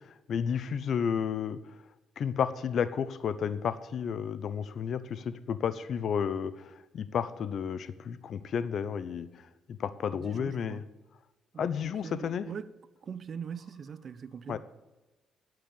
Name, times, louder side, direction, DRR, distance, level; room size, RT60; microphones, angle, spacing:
voice 1, 0.3-1.6 2.2-9.3 9.8-10.8 11.6-12.5 14.5-14.6, left 7 dB, 60° left, 0.7 m, -32 dB
voice 2, 10.1-10.8 11.5-12.8 13.0-14.6, right 7 dB, 50° right, 0.6 m, -42 dB
11.0 x 7.6 x 7.0 m
cardioid pair, 90°, 0 cm